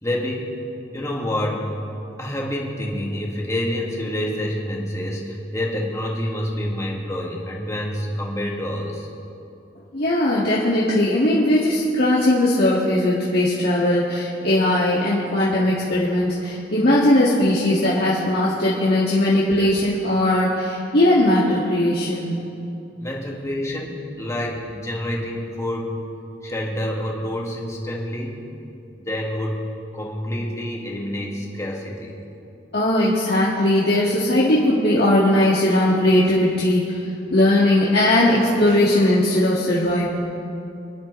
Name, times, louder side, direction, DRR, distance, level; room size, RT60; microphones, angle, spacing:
voice 1, 0.0-0.6 0.9-1.8 2.2-9.1 23.0-26.1 26.4-28.4 29.0-29.7 29.9-32.2, left 1 dB, 15° left, -2 dB, 1.9 m, -27 dB
voice 2, 9.9-22.4 32.7-37.0 37.3-40.1, left 1 dB, 60° left, -7 dB, 1.8 m, -19 dB
26.5 x 10.5 x 3.1 m, 2.7 s
head